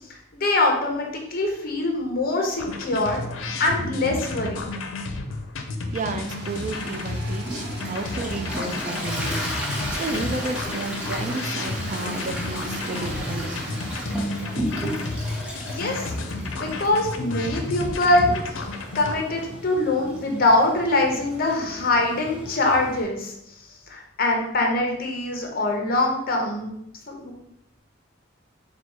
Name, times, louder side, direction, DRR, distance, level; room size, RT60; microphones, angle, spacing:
voice 1, 0.3-3.2 3.6-4.7 15.7-16.1 16.4-18.3 18.9-23.3 23.9-26.7 27.1-27.3, left 2 dB, 50° left, 1 dB, 0.8 m, -23 dB
sound 1, 2.6-19.2, left 2 dB, 90° left, 0.5 m, -32 dB
voice 2, 5.9-9.5 9.9-13.8 15.6-15.7, right 3 dB, 40° right, 7 dB, 0.3 m, -32 dB
sound 2, 5.9-14.1, right 2 dB, 60° right, 0.8 m, -41 dB
Toilet flush, 7.4-23.0, equal, 5° right, 0.8 m, -34 dB
4.2 x 2.3 x 4.4 m, 0.79 s
head